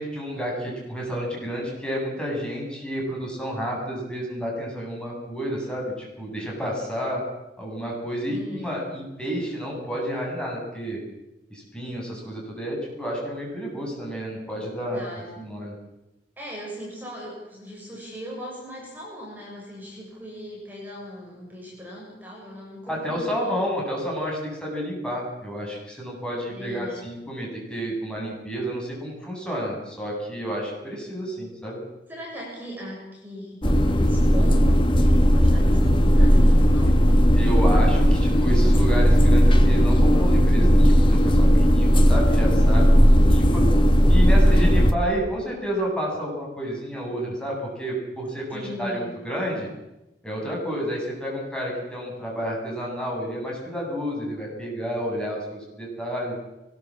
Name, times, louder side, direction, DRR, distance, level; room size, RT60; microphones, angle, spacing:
voice 1, 0.0-7.2 7.6-11.0 11.5-15.0 15.4-15.7 22.9-31.8 37.3-43.6 44.1-49.7 50.2-56.4, equal, 5° left, -2 dB, 7.9 m, -30 dB
voice 2, 8.3-8.9 14.9-15.3 16.4-23.6 26.5-27.1 32.1-37.0 44.2-44.7 48.5-49.2, equal, 10° right, -3 dB, 7.2 m, -38 dB
sound 1, 33.6-44.9, equal, 30° left, 1.7 m, -16 dB
23.5 x 21.0 x 7.6 m, 0.95 s
head